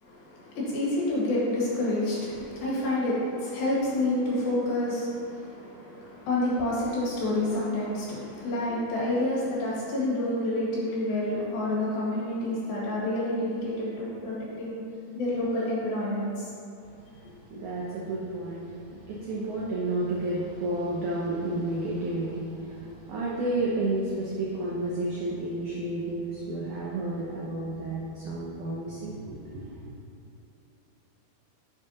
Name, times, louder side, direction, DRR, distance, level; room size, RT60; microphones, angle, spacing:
voice 1, 0.0-14.8 15.1-16.5, left 1 dB, 65° left, -6 dB, 3.4 m, -28 dB
voice 2, 17.5-29.8, right 2 dB, 90° right, -5 dB, 1.7 m, -31 dB
10.5 x 7.0 x 2.8 m, 2.8 s
omnidirectional pair, 4.9 m